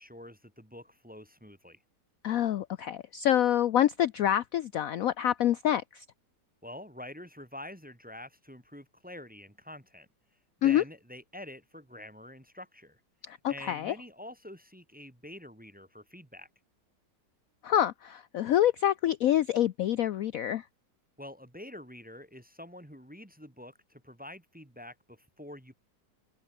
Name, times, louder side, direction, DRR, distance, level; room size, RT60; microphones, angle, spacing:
voice 1, 0.0-1.8 6.6-10.1 10.6-13.0 13.5-16.5 21.2-25.7, left 1 dB, 5° right, 1.5 m, -47 dB
voice 2, 2.2-6.0 10.6-10.8 13.3-13.9 17.6-20.6, left 11 dB, 65° left, 0.9 m, -26 dB
omnidirectional pair, 1.9 m